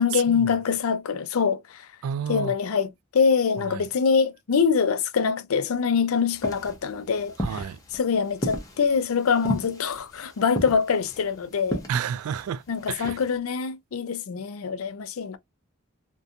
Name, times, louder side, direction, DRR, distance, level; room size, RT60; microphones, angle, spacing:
voice 1, 0.0-1.9 2.3-11.8 12.7-15.4, left 6 dB, 75° left, 0.4 m, -24 dB
voice 2, 2.0-2.5 7.4-7.8 11.9-13.2, right 8 dB, 90° right, 0.3 m, -30 dB
sound 1, 6.3-13.4, equal, 15° left, 0.7 m, -35 dB
2.5 x 2.2 x 2.6 m
head